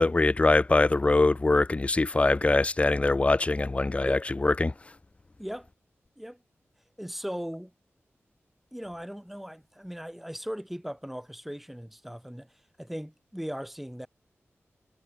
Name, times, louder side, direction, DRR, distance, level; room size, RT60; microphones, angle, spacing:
voice 1, 0.0-4.7, left 2 dB, 25° left, 0.5 m, -23 dB
voice 2, 5.4-5.7 6.2-6.4 7.0-7.7 8.7-14.1, equal, 5° right, 0.8 m, -38 dB
wide cardioid pair, 100°, 5 cm